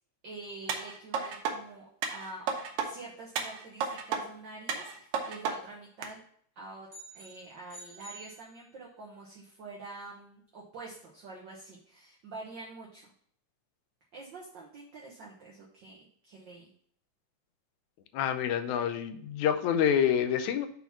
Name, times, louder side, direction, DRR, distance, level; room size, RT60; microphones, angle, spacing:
voice 1, 0.2-1.8 2.1-2.5 2.8-6.2 6.5-6.9 7.1-13.1 14.1-16.7, right 3 dB, 60° right, -3 dB, 1.2 m, -46 dB
sound 1, 0.7-1.5 2.0-2.9 3.4-4.2 4.7-5.5 6.0-6.1, right 6 dB, 75° right, 2.2 m, -32 dB
sound 2, 6.9-9.1, right 2 dB, 40° right, 1.4 m, -50 dB
voice 2, 18.1-20.7, left 9 dB, 80° left, 9 dB, 1.9 m, -27 dB
5.7 x 4.0 x 5.8 m, 0.62 s
omnidirectional pair, 3.4 m